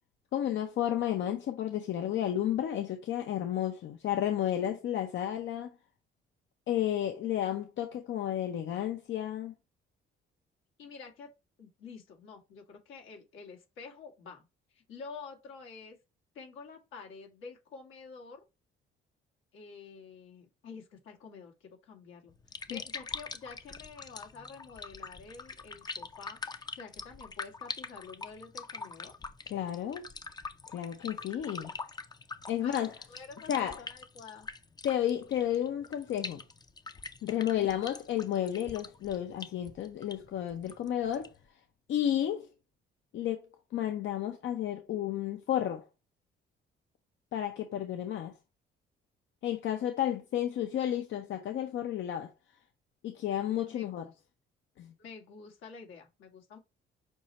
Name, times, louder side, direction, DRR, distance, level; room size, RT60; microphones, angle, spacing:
voice 1, 0.3-5.7 6.7-9.5 22.7-22.8 29.5-30.1 30.7-31.7 32.5-32.9 33.5-33.8 34.8-36.4 37.2-41.3 41.9-42.5 43.1-43.4 43.7-45.8 47.3-48.3 49.4-52.3 53.0-54.0 54.8-54.9, left 11 dB, 70° left, 0.7 m, -32 dB
voice 2, 10.8-11.3 11.6-14.4 14.7-16.0 16.3-18.4 19.5-29.1 32.6-34.5 37.5-37.8 53.6-54.1 55.0-56.6, left 5 dB, 90° left, 1.6 m, -49 dB
sound 1, 22.3-41.5, left 4 dB, 20° left, 0.5 m, -44 dB
6.2 x 2.1 x 4.0 m
cardioid pair, 90°, 20 cm